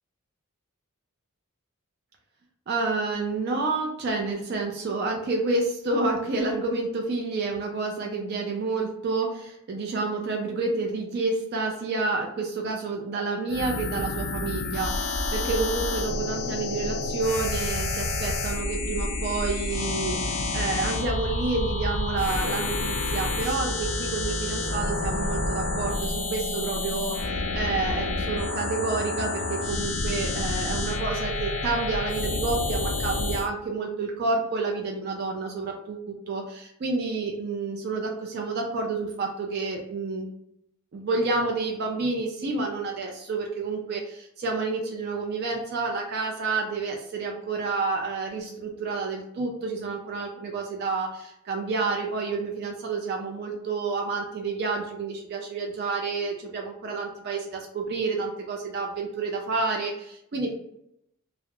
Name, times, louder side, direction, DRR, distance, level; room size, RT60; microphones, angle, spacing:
voice 1, 2.7-40.3 40.9-60.5, right 3 dB, 45° right, 1 dB, 0.4 m, -29 dB
sound 1, 13.5-33.5, left 3 dB, 70° left, 0.4 m, -29 dB
sound 2, 20.2-26.5, equal, ahead, 1.0 m, -35 dB
2.3 x 2.0 x 2.8 m, 0.78 s
head